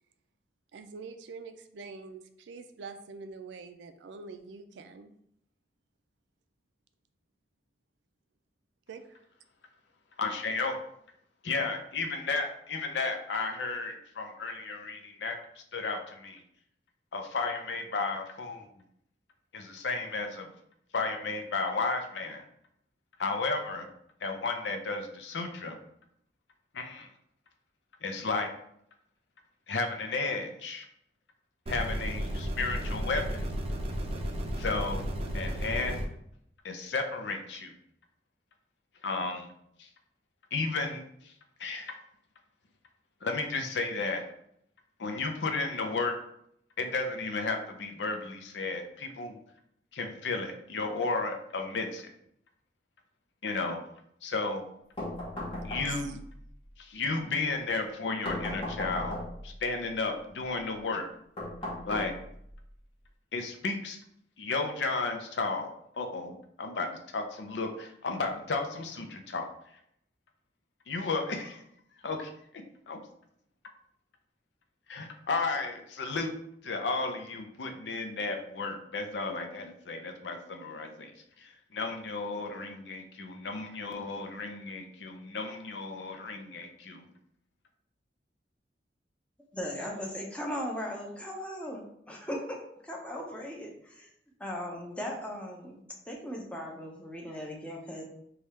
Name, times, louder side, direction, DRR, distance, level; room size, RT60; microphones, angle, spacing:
voice 1, 0.7-5.1 8.9-9.2 55.8-56.2, right 4 dB, 90° right, 8 dB, 0.4 m, -45 dB
voice 2, 10.2-10.8 11.4-15.4 15.7-16.4 17.1-18.7 19.5-20.5 20.9-22.4 23.2-23.9 24.2-25.8 26.7-27.1 28.0-28.5 29.7-30.9 31.7-33.4 34.6-35.0 35.3-36.0 36.6-37.7 39.0-39.5 39.8-39.9 40.5-41.3 41.6-41.9 43.2-44.3 45.0-46.2 46.8-49.4 49.9-52.1 53.4-53.8 54.2-54.6 55.6-56.2 56.8-59.2 59.4-61.1 61.8-62.1 63.3-64.0 64.4-69.5 70.9-71.6 72.0-72.3 72.9-73.0 74.9-76.3 76.6-81.1 81.4-87.1, left 3 dB, 90° left, 4 dB, 0.6 m, -33 dB
sound 1, 31.7-36.1, equal, 35° right, 0.5 m, -33 dB
sound 2, 55.0-56.2 58.2-59.5 61.4-62.5, left 1 dB, 30° left, 0.9 m, -36 dB
voice 3, 89.5-92.6 92.8-94.1 94.4-98.0, equal, 5° left, -1 dB, 0.6 m, -38 dB
3.3 x 2.3 x 4.1 m, 0.72 s
head